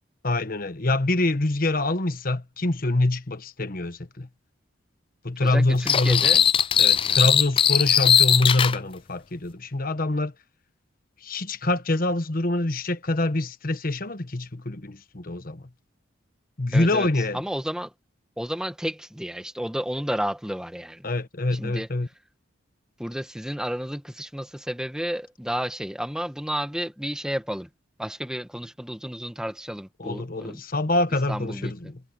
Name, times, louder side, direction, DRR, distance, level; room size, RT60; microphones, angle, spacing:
voice 1, 0.2-4.3 5.2-6.3 6.8-10.3 11.2-15.6 16.6-17.4 21.0-22.1 30.0-32.0, left 2 dB, 45° left, 1.3 m, -25 dB
voice 2, 5.4-6.4 16.7-17.1 17.3-17.9 18.4-21.0 21.5-21.9 23.0-27.7 28.0-30.6 31.3-31.7, equal, 5° right, 1.4 m, -31 dB
sound 1, 5.9-8.8, left 8 dB, 25° left, 0.3 m, -19 dB
head